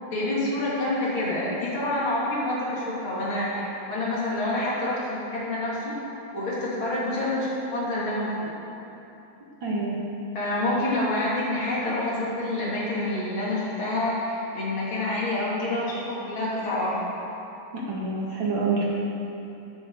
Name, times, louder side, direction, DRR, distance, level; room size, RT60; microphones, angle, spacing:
voice 1, 0.0-5.8 6.3-8.5 10.4-17.2, left 1 dB, 90° left, -7 dB, 3.7 m, -27 dB
voice 2, 9.6-10.0 17.7-18.9, right 3 dB, 75° right, -5 dB, 2.9 m, -27 dB
12.5 x 10.5 x 4.9 m, 2.9 s
omnidirectional pair, 2.1 m